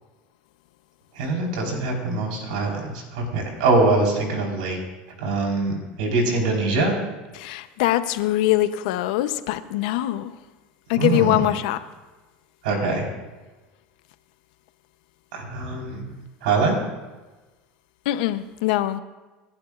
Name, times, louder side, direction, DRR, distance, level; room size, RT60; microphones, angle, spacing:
voice 1, 1.2-4.8 5.2-6.9 11.0-11.4 12.6-13.1 15.3-16.1 16.4-16.8, right 3 dB, 90° right, 4.5 m, -23 dB
voice 2, 7.3-10.3 10.9-11.8 18.1-19.0, left 14 dB, 80° left, 0.8 m, -23 dB
28.0 x 11.5 x 2.5 m
supercardioid pair, 135°, 4 cm